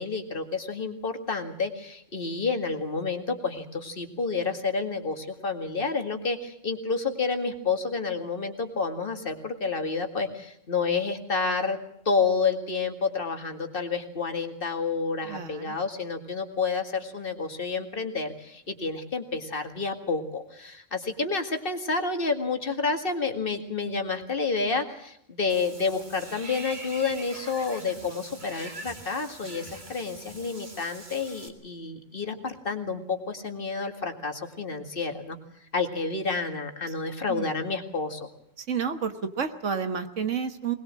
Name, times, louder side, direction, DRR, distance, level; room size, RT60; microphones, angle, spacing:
voice 1, 0.0-11.8 12.1-35.4 35.7-38.3, left 4 dB, 45° left, 6 dB, 2.2 m, -29 dB
voice 2, 15.2-15.8 37.3-37.6 38.6-40.7, right 6 dB, 75° right, 9 dB, 1.8 m, -30 dB
Water / Bathtub (filling or washing), 25.5-31.5, right 2 dB, 40° right, 2.5 m, -43 dB
21.0 x 20.5 x 7.5 m, 0.73 s
omnidirectional pair, 1.3 m